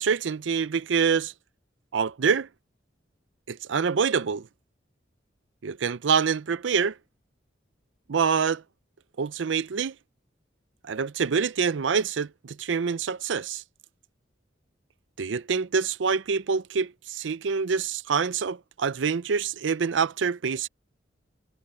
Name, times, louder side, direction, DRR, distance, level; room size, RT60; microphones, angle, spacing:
voice 1, 0.0-1.3 1.9-2.5 3.5-4.5 5.6-7.0 8.1-8.6 9.2-9.9 10.8-13.6 15.2-20.7, right 6 dB, 90° right, 0.5 m, -26 dB
head